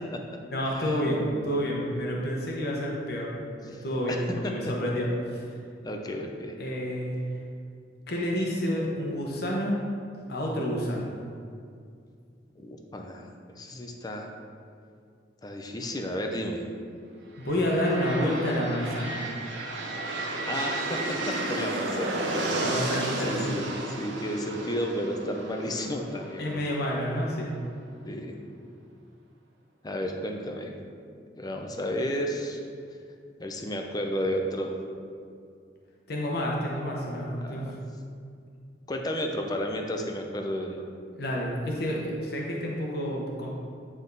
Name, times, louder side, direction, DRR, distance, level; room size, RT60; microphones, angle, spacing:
voice 1, 0.5-3.3 3.6-5.4 6.6-7.3 8.1-9.8 10.3-11.1 17.4-19.2 22.5-23.6 26.4-27.5 36.1-37.7 41.1-43.5, equal, 60° left, -2 dB, 1.0 m, -29 dB
voice 2, 4.1-4.5 5.8-6.5 12.6-13.3 13.5-14.3 15.4-16.6 20.5-22.7 23.3-23.6 24.0-26.6 28.0-28.4 29.8-30.7 31.4-32.6 33.4-34.7 37.0-37.8 38.9-40.9, equal, 20° left, 3 dB, 0.6 m, -32 dB
sound 1, 17.4-27.2, right 2 dB, 75° right, 0.8 m, -33 dB
9.5 x 3.6 x 3.9 m, 2.3 s
head